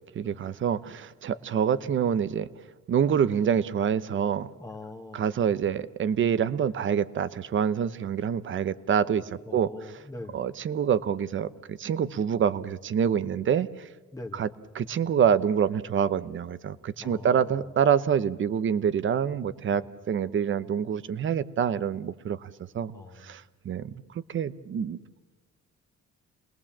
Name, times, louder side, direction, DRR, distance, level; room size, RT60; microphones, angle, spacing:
voice 1, 0.1-2.5 2.9-4.5 5.1-9.7 10.3-13.7 14.3-14.5 14.7-22.5 22.7-22.9 23.2-23.9 24.3-25.2, right 8 dB, 40° right, 15 dB, 0.9 m, -26 dB
voice 2, 4.6-5.2 9.5-10.4 14.1-14.5 17.0-17.5 19.7-19.9 22.9-23.4, left 2 dB, 10° left, 2 dB, 1.5 m, -42 dB
29.5 x 20.5 x 7.4 m, 1.2 s
cardioid pair, 170°, 29 cm